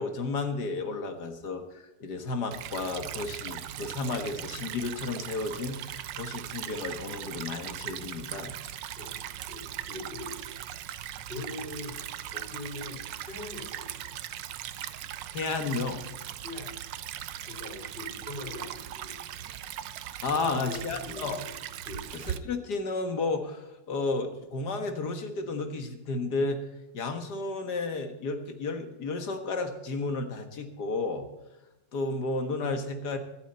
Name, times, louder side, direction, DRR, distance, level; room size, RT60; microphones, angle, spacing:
voice 1, 0.0-8.5 15.3-16.0 20.2-21.4 22.1-26.6 26.9-31.3 31.9-33.2, left 3 dB, 65° left, 6 dB, 2.0 m, -32 dB
Stream / Trickle dribble, 2.5-22.4, right 11 dB, 85° right, 1.4 m, -39 dB
voice 2, 9.0-10.6 11.3-12.0 12.3-13.0 13.2-14.2 16.4-16.7 17.5-19.2 20.4-21.5 21.8-22.1, left 2 dB, 30° left, -2 dB, 4.9 m, -41 dB
24.5 x 8.3 x 4.3 m, 1.0 s
omnidirectional pair, 1.9 m